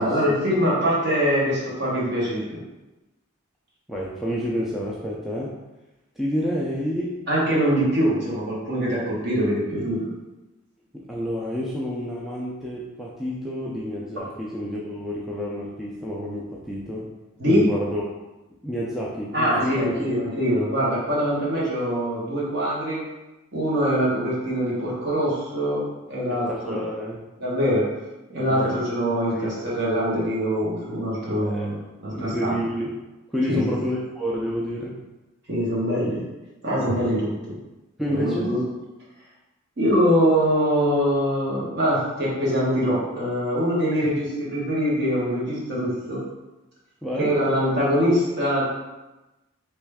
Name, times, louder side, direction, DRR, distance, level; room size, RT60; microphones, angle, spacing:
voice 1, 0.0-2.6 7.3-10.1 17.4-17.7 19.3-23.0 23.5-26.8 27.4-27.9 28.3-32.6 33.5-33.7 35.5-36.2 36.6-37.6 38.1-38.6 39.8-46.2 47.2-48.6, equal, 50° right, -6 dB, 1.3 m, -23 dB
voice 2, 3.9-5.5 6.2-7.1 11.1-17.1 17.5-18.0 18.6-19.9 26.3-27.2 28.5-28.8 29.3-29.5 31.4-31.8 32.1-32.9 33.3-35.0 38.0-38.5 47.0-47.3, equal, ahead, -5 dB, 0.3 m, -29 dB
3.2 x 3.1 x 3.4 m, 1.1 s
head